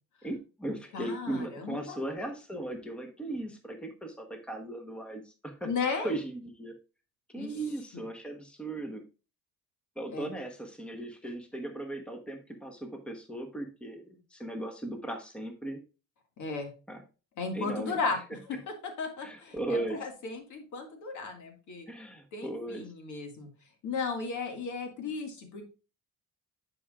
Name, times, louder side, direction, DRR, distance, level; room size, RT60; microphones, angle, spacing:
voice 1, 0.2-5.7 6.0-6.7 7.3-9.0 10.0-15.8 16.9-17.0 17.5-18.2 19.2-20.0 21.9-22.9, right 1 dB, 5° left, 4 dB, 1.1 m, -37 dB
voice 2, 0.9-2.0 5.7-6.1 7.4-7.5 7.9-8.0 10.1-10.3 16.4-16.7 17.4-18.2 18.7-21.9 22.3-23.5 23.8-25.6, left 4 dB, 65° left, 4 dB, 1.9 m, -35 dB
10.5 x 4.9 x 2.4 m, 0.33 s
cardioid pair, 100°, 33 cm